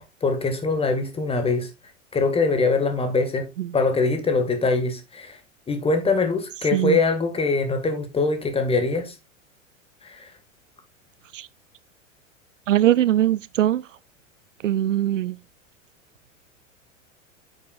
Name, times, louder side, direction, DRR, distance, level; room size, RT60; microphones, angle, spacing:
voice 1, 0.0-1.7 2.1-3.5 3.7-5.4 5.7-9.1 10.0-10.3, left 3 dB, 15° left, 1.8 m, -23 dB
voice 2, 12.7-13.8 14.6-15.4, right 12 dB, 70° right, 0.5 m, -21 dB
9.6 x 7.4 x 2.4 m
figure-of-eight pair, 90°, 39 cm